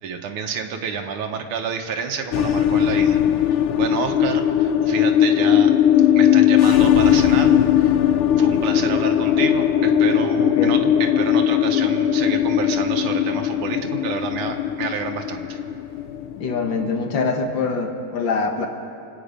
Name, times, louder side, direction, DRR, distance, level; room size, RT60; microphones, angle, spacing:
voice 1, 0.0-3.2 3.5-5.7 6.1-15.6, right 6 dB, 90° right, 4 dB, 1.9 m, -29 dB
sound 1, 2.3-17.0, left 10 dB, 90° left, 1.5 m, -18 dB
voice 2, 10.4-10.8 16.4-18.7, left 4 dB, 60° left, 4 dB, 2.0 m, -24 dB
27.0 x 9.1 x 5.1 m, 2.6 s
omnidirectional pair, 2.3 m